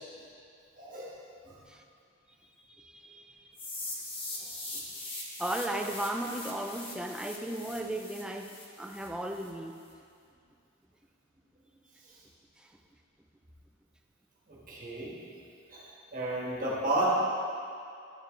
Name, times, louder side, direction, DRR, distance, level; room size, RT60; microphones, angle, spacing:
voice 1, 0.8-1.2 1.5-1.6 14.5-15.2 15.7-15.9 16.1-17.1, right 2 dB, 40° right, -5 dB, 1.3 m, -32 dB
voice 2, 2.4-3.6 4.4-4.8 5.4-9.8 12.6-12.7, right 1 dB, 5° right, 3 dB, 0.3 m, -36 dB
sound 1, 3.6-9.5, left 2 dB, 25° left, 0.9 m, -41 dB
10.5 x 4.5 x 3.0 m, 2.4 s
head